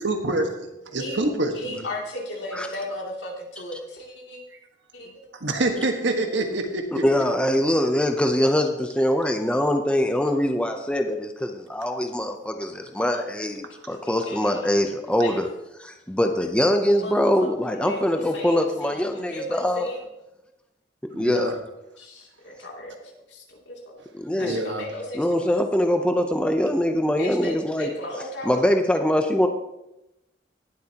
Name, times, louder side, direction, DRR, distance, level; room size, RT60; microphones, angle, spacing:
voice 1, 0.0-1.9 5.3-7.0 21.1-21.6 24.3-24.9, right 2 dB, 80° right, 4 dB, 1.5 m, -26 dB
voice 2, 0.9-1.2 1.6-4.4 4.9-5.1 6.3-6.4 13.0-13.3 13.9-14.8 15.2-15.4 16.9-17.1 17.6-20.0 22.0-24.0 24.4-25.5 27.2-28.6, left 1 dB, 75° left, -1 dB, 2.8 m, -36 dB
voice 3, 7.0-15.5 15.8-19.9 21.1-21.5 24.1-24.6 25.2-27.9 28.4-29.5, left 1 dB, 5° left, 5 dB, 0.6 m, -23 dB
18.5 x 7.8 x 2.9 m, 0.91 s
head